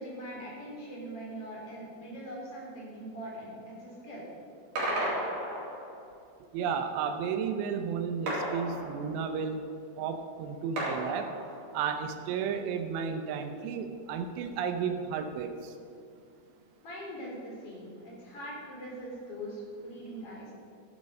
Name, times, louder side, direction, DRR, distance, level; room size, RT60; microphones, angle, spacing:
voice 1, 0.0-4.3 16.8-20.5, equal, 35° left, -4 dB, 3.9 m, -42 dB
sound 1, 4.8-6.1 8.3-9.4 10.8-11.9, right 1 dB, 50° right, 4.8 m, -34 dB
voice 2, 6.5-9.6 10.0-11.4 11.7-15.7, right 6 dB, 90° right, 6 dB, 3.0 m, -33 dB
13.5 x 10.5 x 5.4 m, 2.4 s
omnidirectional pair, 4.8 m